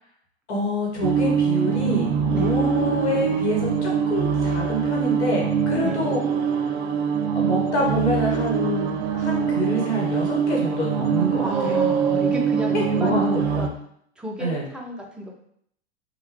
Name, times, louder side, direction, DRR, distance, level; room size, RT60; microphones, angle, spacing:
voice 1, 0.5-6.2 7.2-11.5 12.7-13.6 14.4-14.6, equal, 75° left, -2 dB, 1.0 m, -26 dB
sound 1, 1.0-13.7, right 6 dB, 65° right, 0.5 m, -23 dB
voice 2, 11.4-13.7 14.2-15.4, left 1 dB, 5° right, -1 dB, 0.4 m, -31 dB
3.5 x 2.1 x 3.0 m, 0.68 s
hypercardioid pair, 95°, 34 cm